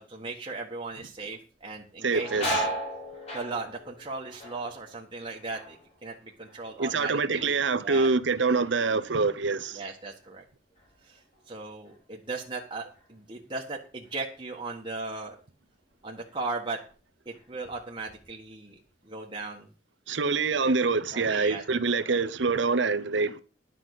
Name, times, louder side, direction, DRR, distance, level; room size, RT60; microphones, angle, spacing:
voice 1, 0.0-2.3 3.3-8.1 9.7-10.4 11.0-15.3 16.0-16.8 17.2-19.7 21.1-21.6 22.0-22.2, right 3 dB, 25° right, 1.5 m, -37 dB
sound 1, 1.6-7.2 7.5-8.1 8.6-11.5 11.9-12.0 12.9-13.1 13.6-14.7 15.1-15.3 15.9-16.6 16.9-18.0, right 1 dB, 35° left, 5.3 m, -37 dB
voice 2, 2.0-2.5 6.8-9.8 20.1-23.4, right 4 dB, 80° right, 0.8 m, -25 dB
10.5 x 5.9 x 8.1 m
head